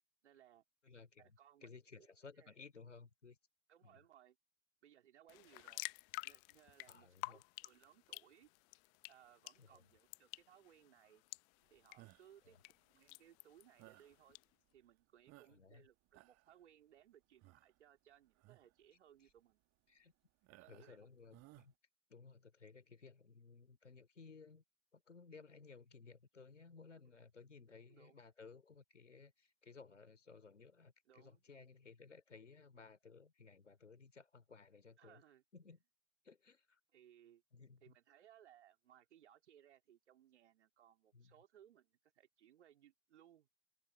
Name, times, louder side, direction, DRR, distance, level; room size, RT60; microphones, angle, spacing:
voice 1, 0.2-0.6 1.2-1.7 2.0-2.1 2.4-2.5 3.7-4.4 4.8-5.9 6.2-8.5 9.1-11.2 11.7-12.6 12.9-14.4 14.7-19.6 20.5-21.0 27.9-28.2 31.1-31.4 35.0-35.4 36.9-37.4 37.8-43.5, right 10 dB, 70° right, 3.3 m, -65 dB
voice 2, 0.8-3.4 3.8-4.0 6.9-7.4 9.6-9.8 12.4-12.6 15.4-15.9 19.2-19.3 19.9-20.1 20.7-21.7 22.1-24.6 24.9-35.2 35.5-35.8 36.2-36.8 37.5-37.9 41.1-41.3, left 4 dB, 80° left, 4.5 m, -59 dB
sound 1, 5.3-14.4, left 33 dB, 50° left, 1.0 m, -52 dB
sound 2, 12.0-12.4 13.8-14.2 14.8-14.9 15.3-15.8 16.1-16.6 17.4-17.8 18.3-18.7 19.3-19.4 20.4-21.0 21.3-21.7, right 20 dB, 45° right, 1.7 m, -62 dB
open air
figure-of-eight pair, 70°, 36 cm